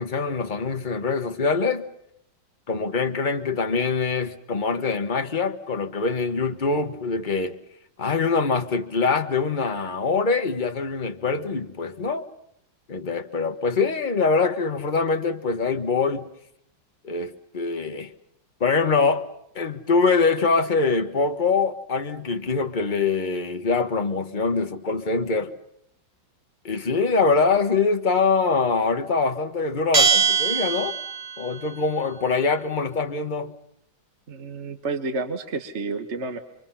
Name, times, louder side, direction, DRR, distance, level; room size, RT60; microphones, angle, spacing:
voice 1, 0.0-1.8 2.7-7.6 8.0-12.3 12.9-16.3 17.0-18.1 18.6-19.3 19.5-25.5 26.6-30.9 31.4-33.5, left 4 dB, 30° left, 1.2 m, -24 dB
Bell, 29.9-31.5, right 6 dB, 65° right, 2.5 m, -21 dB
voice 2, 34.3-36.4, right 3 dB, 40° right, 1.6 m, -30 dB
27.0 x 24.5 x 5.7 m
omnidirectional pair, 2.2 m